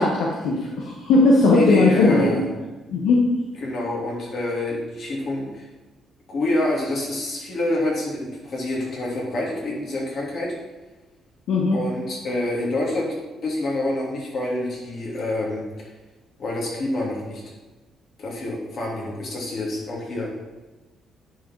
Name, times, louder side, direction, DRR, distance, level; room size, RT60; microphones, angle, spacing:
voice 1, 0.0-2.3 2.9-3.2 11.5-11.8, left 3 dB, 85° left, -2 dB, 1.4 m, -18 dB
voice 2, 1.4-2.5 3.6-5.7 6.3-10.5 11.7-13.1 13.4-15.9 16.4-17.4 18.2-20.4, left 1 dB, 55° left, -3 dB, 3.2 m, -27 dB
10.0 x 5.1 x 4.7 m, 1.2 s
cardioid pair, 90°, 0 cm